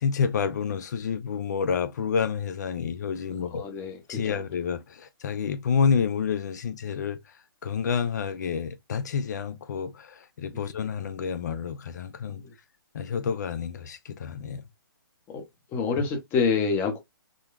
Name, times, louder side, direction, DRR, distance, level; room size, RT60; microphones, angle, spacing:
voice 1, 0.0-3.6 4.1-7.2 7.6-12.4 12.9-14.6, left 6 dB, 50° left, 0.5 m, -29 dB
voice 2, 3.5-4.4 10.5-10.7 12.3-12.5 15.3-15.4 15.7-17.0, left 5 dB, 15° left, 0.8 m, -27 dB
3.8 x 2.2 x 2.4 m
hypercardioid pair, 145°, 12 cm